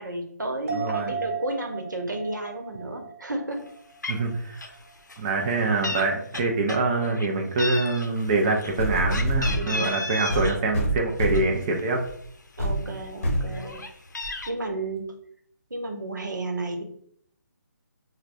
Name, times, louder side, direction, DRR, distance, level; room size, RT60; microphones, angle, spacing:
voice 1, 0.0-3.6 9.5-10.0 12.6-13.8 14.5-15.1 15.7-16.8, right 2 dB, 90° right, 3 dB, 0.9 m, -32 dB
voice 2, 0.7-1.1 4.1-4.7 5.2-12.0, right 3 dB, 25° right, 0 dB, 0.4 m, -25 dB
sound 1, 0.7-4.4 4.7-4.8, right 5 dB, 45° right, 1.1 m, -36 dB
Meow, 3.7-3.8 4.0-4.3 4.6-4.8 5.1-6.0 6.3-7.3 7.6-10.6 11.0-12.1 12.6-12.7 13.0-14.5, left 2 dB, 85° left, 0.6 m, -34 dB
sound 2, 8.8-9.7 10.3-11.6 12.1-12.2 12.6-12.8 13.2-13.5 14.2-14.3, right 1 dB, 45° left, 0.8 m, -26 dB
4.7 x 2.2 x 2.5 m, 0.65 s
figure-of-eight pair, 155°, 10 cm